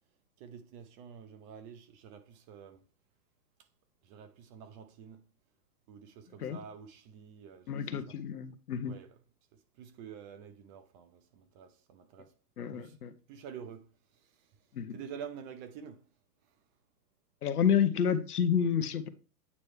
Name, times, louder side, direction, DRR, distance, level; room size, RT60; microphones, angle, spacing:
voice 1, 0.4-2.9 4.0-5.2 5.9-8.2 8.8-9.2 9.5-12.3 12.7-13.0 13.3-16.1 16.4-16.6, right 7 dB, 30° right, 0.7 m, -49 dB
voice 2, 7.7-9.0 12.6-13.1 14.7-14.9 17.4-19.1, left 8 dB, 70° left, 1.0 m, -29 dB
8.5 x 3.2 x 4.4 m
figure-of-eight pair, 110°, 48 cm